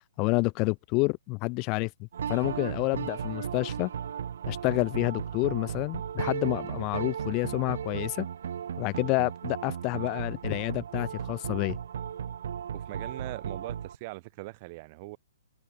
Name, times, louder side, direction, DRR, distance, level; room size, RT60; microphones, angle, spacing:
voice 1, 0.2-3.9 4.5-8.3 8.8-11.8, left 27 dB, 30° left, 0.3 m, -29 dB
sound 1, 2.1-14.0, right 8 dB, 60° right, 2.4 m, -35 dB
voice 2, 12.7-15.2, right 24 dB, 40° right, 3.0 m, -41 dB
open air
figure-of-eight pair, 125°, 0 cm